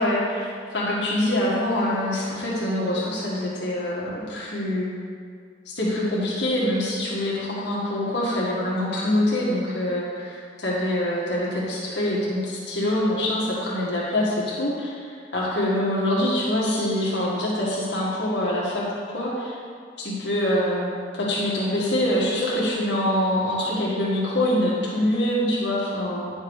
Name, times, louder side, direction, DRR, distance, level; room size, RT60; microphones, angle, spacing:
voice 1, 0.0-4.9 5.7-19.6 20.0-26.3, left 1 dB, 75° left, -6 dB, 1.8 m, -25 dB
10.0 x 6.4 x 4.9 m, 2.2 s
head